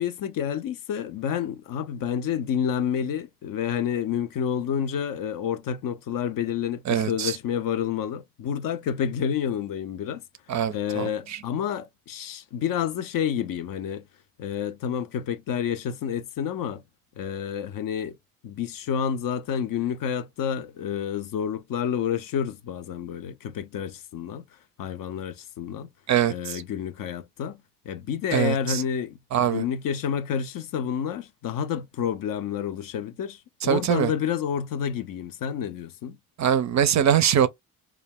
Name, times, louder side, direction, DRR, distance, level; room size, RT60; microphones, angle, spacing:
voice 1, 0.0-10.2 10.7-14.0 14.4-16.8 17.2-18.2 18.4-24.4 24.8-25.9 26.3-27.6 27.9-36.2, left 8 dB, 50° left, 0.5 m, -29 dB
voice 2, 6.9-7.3 10.5-11.4 26.1-26.6 28.3-28.8 29.3-29.6 33.6-34.1 36.4-37.5, right 9 dB, 40° right, 0.4 m, -23 dB
2.3 x 2.1 x 3.4 m
hypercardioid pair, 50°, 43 cm